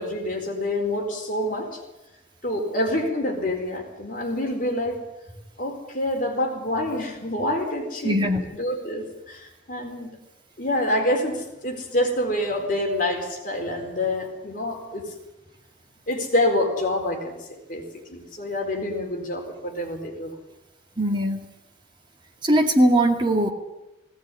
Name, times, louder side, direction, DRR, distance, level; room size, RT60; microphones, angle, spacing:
voice 1, 0.0-1.8 2.4-5.0 5.6-10.1 10.6-15.1 16.1-20.3, left 1 dB, 45° left, 2 dB, 4.2 m, -27 dB
voice 2, 8.0-8.4 21.0-21.5 22.4-23.5, right 1 dB, 25° right, 3 dB, 2.3 m, -20 dB
19.0 x 18.0 x 9.9 m, 0.99 s
head